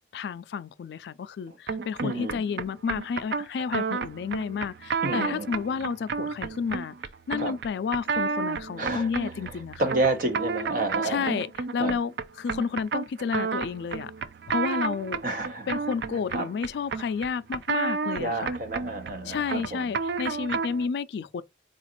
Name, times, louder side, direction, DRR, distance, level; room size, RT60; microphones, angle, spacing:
voice 1, 0.1-6.9 7.3-9.8 11.0-11.5 11.7-14.1 14.5-15.2 15.7-18.6 19.3-21.4, left 6 dB, 65° left, 0.3 m, -31 dB
sound 1, 1.7-20.9, right 5 dB, 65° right, 0.4 m, -32 dB
voice 2, 2.0-2.4 5.0-5.5 7.4-7.5 8.8-9.3 9.8-11.4 11.8-12.0 15.2-15.8 16.3-16.5 18.2-19.9, right 2 dB, 50° right, 0.9 m, -30 dB
3.9 x 2.5 x 2.9 m
head